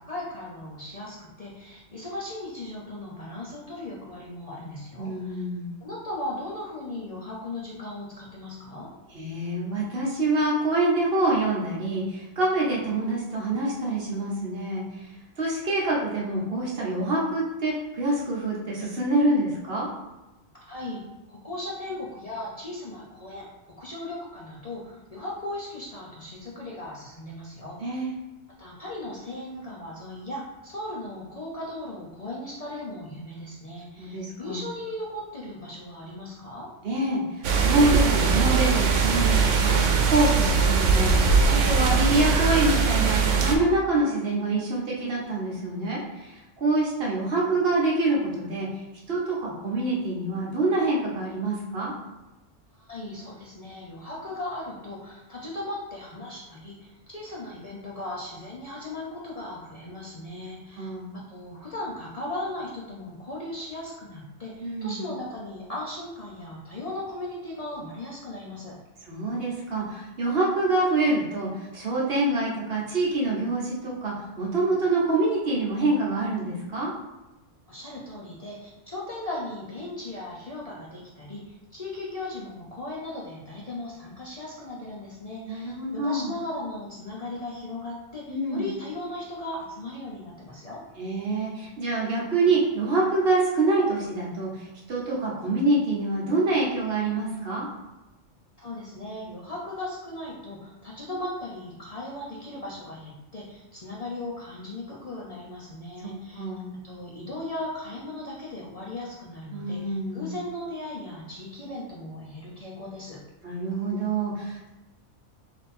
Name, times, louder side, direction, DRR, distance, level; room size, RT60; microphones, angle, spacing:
voice 1, 0.0-5.4 5.8-8.9 20.5-21.0 21.3-23.5 23.8-28.0 28.5-36.7 52.7-68.8 77.7-90.8 98.6-106.5 106.8-113.2, left 1 dB, 40° left, -5 dB, 0.7 m, -37 dB
voice 2, 5.0-5.7 9.1-15.1 15.4-19.9 27.8-28.1 34.0-34.6 36.8-48.7 49.1-51.9 60.8-61.1 64.6-65.1 69.1-76.9 85.5-86.3 88.3-88.7 91.0-97.7 106.0-106.7 109.5-110.3 113.4-114.7, right 2 dB, 55° right, -4 dB, 1.1 m, -26 dB
sound 1, 37.4-43.5, right 5 dB, 90° right, 0.9 m, -21 dB
sound 2, 37.6-39.4 39.7-41.9, right 1 dB, 85° left, 1.0 m, -39 dB
3.5 x 2.7 x 4.2 m, 1.0 s
omnidirectional pair, 1.2 m